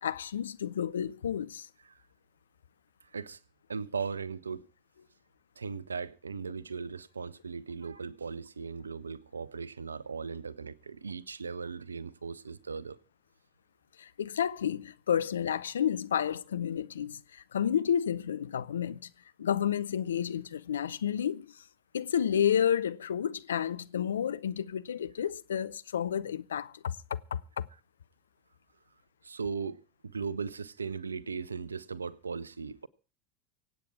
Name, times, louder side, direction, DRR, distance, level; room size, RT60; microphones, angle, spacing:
voice 1, 0.0-1.7 14.0-19.1 19.4-21.6 21.9-27.7, left 9 dB, 75° left, 0.6 m, -31 dB
voice 2, 3.0-3.4 3.7-4.7 5.6-13.0 29.2-32.9, right 5 dB, 85° right, 0.6 m, -38 dB
24.5 x 8.7 x 4.7 m
figure-of-eight pair, 75°, 0 cm